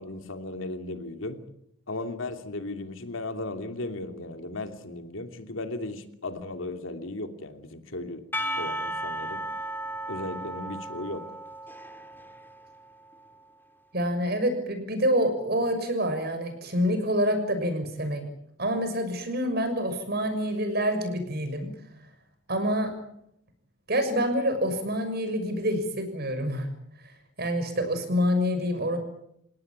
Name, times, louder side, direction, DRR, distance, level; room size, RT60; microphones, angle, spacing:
voice 1, 0.0-1.4 1.9-8.2 8.6-9.4 10.1-11.2, left 2 dB, 80° left, 7 dB, 2.8 m, -36 dB
Percussion / Church bell, 8.3-13.3, right 1 dB, 10° left, 2.1 m, -35 dB
voice 2, 13.9-18.2 18.6-21.7 22.5-22.9 23.9-26.7 27.4-29.0, equal, 50° right, 8 dB, 6.4 m, -27 dB
29.0 x 18.0 x 8.9 m, 0.77 s
head